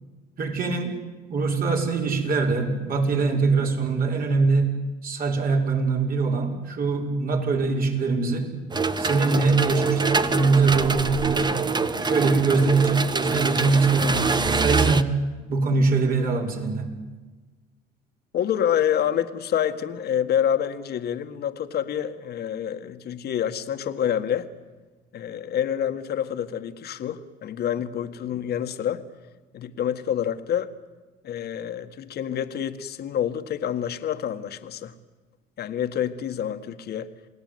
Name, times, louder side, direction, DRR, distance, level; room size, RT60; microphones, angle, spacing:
voice 1, 0.4-1.0 1.3-8.5 9.0-11.6 12.0-15.1 15.5-16.9, right 4 dB, 50° right, 2 dB, 5.8 m, -23 dB
sound 1, 8.7-15.0, right 4 dB, 20° right, 1.4 m, -24 dB
voice 2, 18.3-24.5 25.1-29.0 29.5-30.7 31.2-34.9 35.6-37.1, left 9 dB, 55° left, 8 dB, 1.9 m, -27 dB
28.5 x 19.0 x 9.6 m, 1.3 s
supercardioid pair, 85°, 19 cm